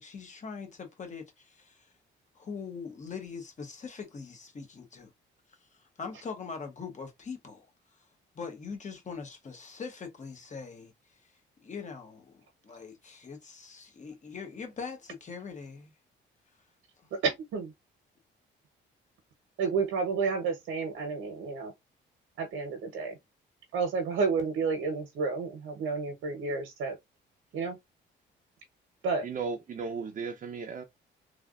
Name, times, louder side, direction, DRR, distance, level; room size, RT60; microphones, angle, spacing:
voice 1, 0.0-1.7 2.4-5.1 6.0-7.7 8.3-10.9 11.6-15.9, left 5 dB, 35° left, 1.1 m, -42 dB
voice 2, 17.1-17.7 19.6-21.7 22.4-23.2 23.7-27.0 27.5-27.8 29.0-29.2, right 4 dB, 85° right, 0.9 m, -30 dB
voice 3, 29.2-30.8, right 5 dB, 40° right, 0.6 m, -35 dB
3.3 x 2.4 x 2.4 m
cardioid pair, 90°, 20 cm